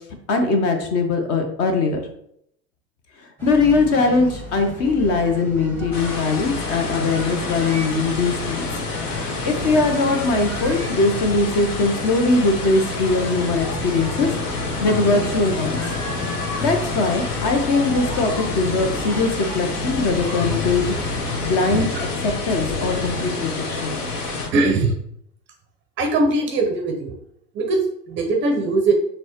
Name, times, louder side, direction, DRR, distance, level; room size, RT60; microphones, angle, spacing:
voice 1, 0.3-2.0 3.4-8.7 9.4-15.8 16.6-20.9 21.4-21.9 22.2-24.0, left 3 dB, 30° left, 5 dB, 0.6 m, -21 dB
sound 1, 3.4-21.4, left 1 dB, 5° left, 1.0 m, -33 dB
sound 2, 5.9-24.5, left 3 dB, 65° left, 1.3 m, -28 dB
voice 2, 24.5-24.9 26.0-27.1 27.5-27.8 28.1-28.9, right 3 dB, 25° right, 3 dB, 0.6 m, -20 dB
6.0 x 2.2 x 2.9 m, 0.72 s
figure-of-eight pair, 95°, 49 cm